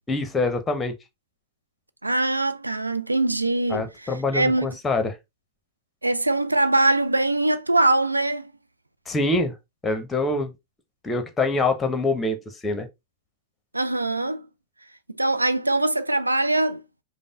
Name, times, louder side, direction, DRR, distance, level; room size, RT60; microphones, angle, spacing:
voice 1, 0.1-0.9 3.7-5.1 9.1-9.5 9.8-10.5 11.0-12.4 12.6-12.9, left 2 dB, 15° left, 0.9 m, -24 dB
voice 2, 2.0-4.7 6.0-8.5 13.7-14.4 15.2-16.8, right 2 dB, 85° right, 0.3 m, -22 dB
5.2 x 2.1 x 3.7 m
figure-of-eight pair, 90°, 0 cm